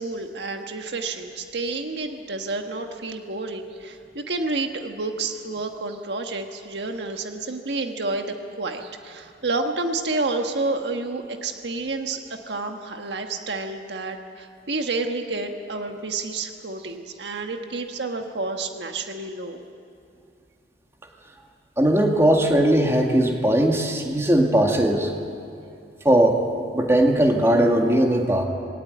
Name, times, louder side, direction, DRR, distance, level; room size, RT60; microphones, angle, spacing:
voice 1, 0.0-19.6, right 3 dB, 75° right, 5 dB, 1.5 m, -29 dB
voice 2, 21.8-25.1 26.1-26.4 26.7-28.4, right 1 dB, 15° right, 2 dB, 2.0 m, -19 dB
20.5 x 18.0 x 9.3 m, 2.6 s
head